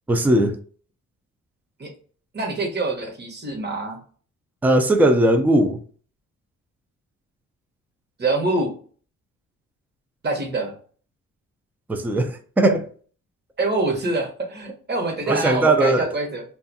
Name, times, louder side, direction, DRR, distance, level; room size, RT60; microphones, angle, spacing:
voice 1, 0.1-0.5 4.6-5.8 11.9-12.9 15.3-16.1, right 1 dB, 5° right, 0.3 m, -18 dB
voice 2, 2.3-4.0 8.2-8.7 10.2-10.8 13.6-16.4, right 2 dB, 35° right, 1.0 m, -25 dB
2.5 x 2.4 x 2.5 m
cardioid pair, 90°, 30 cm